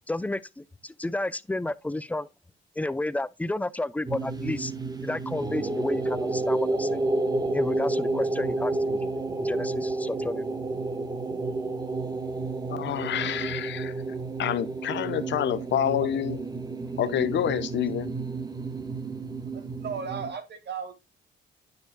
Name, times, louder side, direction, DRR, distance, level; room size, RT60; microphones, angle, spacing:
voice 1, 0.1-2.3 2.8-4.7 5.0-7.1 7.5-9.0 9.4-10.5 16.8-16.9, left 2 dB, 5° left, 0.4 m, -31 dB
sound 1, 4.0-20.3, right 2 dB, 20° right, 1.1 m, -30 dB
voice 2, 12.7-13.9 14.4-16.4 17.0-18.1, left 10 dB, 65° left, 0.9 m, -28 dB
voice 3, 19.5-20.9, right 6 dB, 60° right, 1.9 m, -35 dB
9.6 x 6.6 x 2.2 m
cardioid pair, 90°, 20 cm